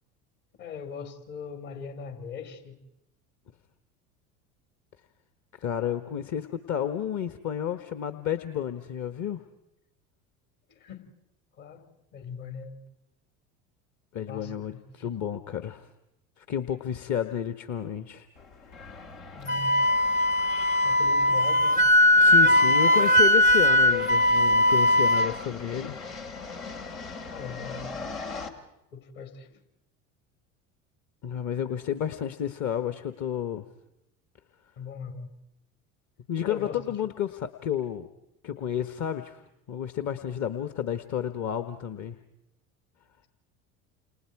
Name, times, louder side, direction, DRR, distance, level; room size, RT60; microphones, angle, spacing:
voice 1, 0.6-2.7 10.8-11.1 11.6-11.9 12.1-12.8 14.3-14.8 19.3-19.8 20.8-21.9 25.2-25.4 27.3-27.9 28.9-29.6 34.8-35.3 36.4-36.8, left 6 dB, 60° left, 6 dB, 4.8 m, -40 dB
voice 2, 5.6-9.4 14.1-15.9 16.4-18.3 22.2-26.0 31.2-33.6 36.3-38.1 38.4-39.4 39.7-42.2, left 9 dB, 45° left, 10 dB, 1.3 m, -31 dB
sound 1, 18.3-28.5, left 4 dB, 80° left, 2.9 m, -41 dB
Wind instrument woodwind instrument, 19.5-25.3, left 1 dB, 20° left, 0.9 m, -20 dB
29.5 x 28.0 x 4.8 m, 0.88 s
hypercardioid pair, 75°, 41 cm